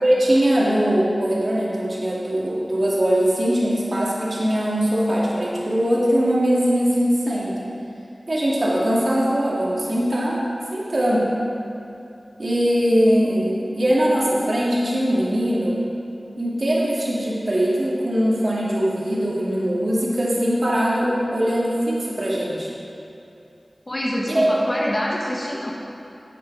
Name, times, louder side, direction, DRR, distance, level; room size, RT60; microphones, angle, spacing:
voice 1, 0.0-7.7 8.3-10.4 10.7-11.3 12.4-15.8 16.4-22.7 24.3-24.5, equal, 60° right, -6 dB, 2.3 m, -21 dB
voice 2, 23.9-25.7, equal, 35° left, -3 dB, 1.2 m, -25 dB
11.0 x 8.4 x 4.6 m, 2.6 s
wide cardioid pair, 45°, 0 cm